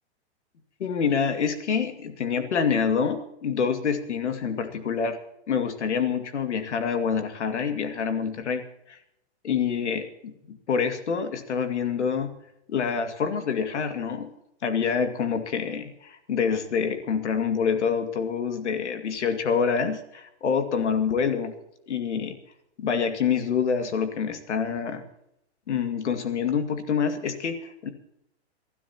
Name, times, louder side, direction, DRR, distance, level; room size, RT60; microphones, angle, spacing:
voice 1, 0.8-5.2 5.5-8.6 8.9-9.0 9.4-12.3 12.7-14.3 14.6-21.5 21.9-22.4 22.8-25.0 25.7-27.9, left 6 dB, 90° left, 6 dB, 2.4 m, -26 dB
27.0 x 12.5 x 3.0 m, 0.79 s
hypercardioid pair, 150°, 34 cm